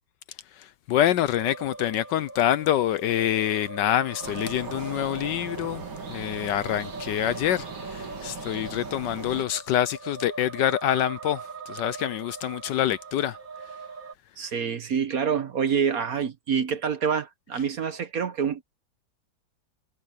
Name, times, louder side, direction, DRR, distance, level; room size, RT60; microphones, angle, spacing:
voice 1, 0.6-5.8 6.1-13.4, left 11 dB, 75° left, 1.2 m, -26 dB
sound 1, 1.3-14.1, right 3 dB, 30° right, 1.4 m, -41 dB
sound 2, 4.2-9.4, right 5 dB, 85° right, 3.2 m, -39 dB
voice 2, 14.4-18.6, right 7 dB, 55° right, 1.3 m, -27 dB
omnidirectional pair, 2.2 m